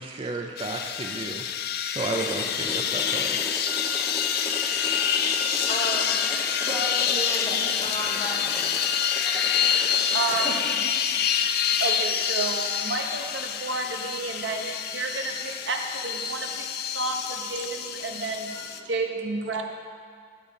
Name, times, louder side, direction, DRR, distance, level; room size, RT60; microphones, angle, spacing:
voice 1, 0.0-1.5 1.9-3.4, right 3 dB, 30° right, 2 dB, 0.5 m, -32 dB
sound 1, 0.6-18.8, left 8 dB, 60° left, 0.5 m, -27 dB
sound 2, 2.0-10.6, left 1 dB, 15° left, 0.9 m, -38 dB
voice 2, 4.8-5.3 5.7-8.6 9.2-9.4 9.7-9.9 10.3-10.5 15.2-15.3 18.5-18.6, equal, 30° left, -5 dB, 2.0 m, -34 dB
voice 3, 10.1-16.7 16.9-19.6, right 3 dB, 85° right, 3 dB, 0.9 m, -31 dB
11.0 x 4.8 x 6.8 m, 2.2 s
head